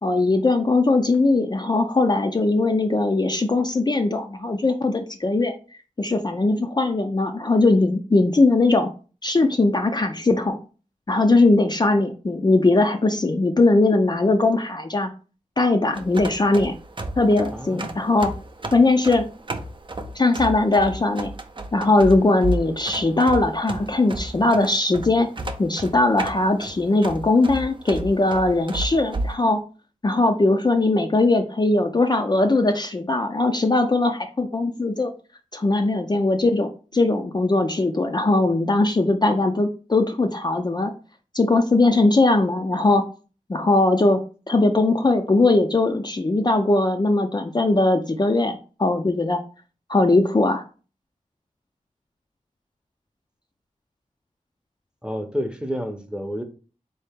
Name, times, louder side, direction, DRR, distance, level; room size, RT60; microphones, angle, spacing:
voice 1, 0.0-5.5 6.0-8.9 9.2-10.6 11.1-15.1 15.6-16.7 17.2-18.3 18.7-19.3 20.1-21.3 21.7-25.3 25.6-29.6 30.0-35.1 35.5-40.9 41.3-43.0 43.5-49.4 49.9-50.6, left 2 dB, 35° left, 4 dB, 0.4 m, -20 dB
sound 1, 15.9-29.4, right 2 dB, 40° right, 0.5 m, -33 dB
voice 2, 17.5-18.0 55.0-56.4, equal, 5° right, 6 dB, 0.7 m, -30 dB
3.8 x 2.8 x 3.5 m, 0.36 s
wide cardioid pair, 55°, 13 cm